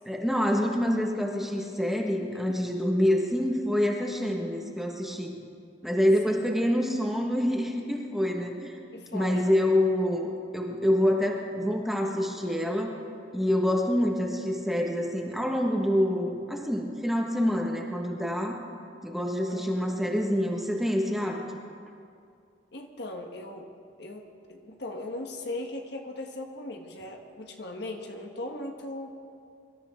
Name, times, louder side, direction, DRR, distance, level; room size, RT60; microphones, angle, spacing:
voice 1, 0.1-5.3 5.8-8.8 9.1-12.9 13.3-18.6 19.0-21.4, left 1 dB, ahead, 0 dB, 1.4 m, -26 dB
voice 2, 8.9-9.5 19.5-20.1 22.7-23.7 24.0-29.2, left 1 dB, 65° left, 3 dB, 1.3 m, -38 dB
24.0 x 13.0 x 3.7 m, 2.4 s
head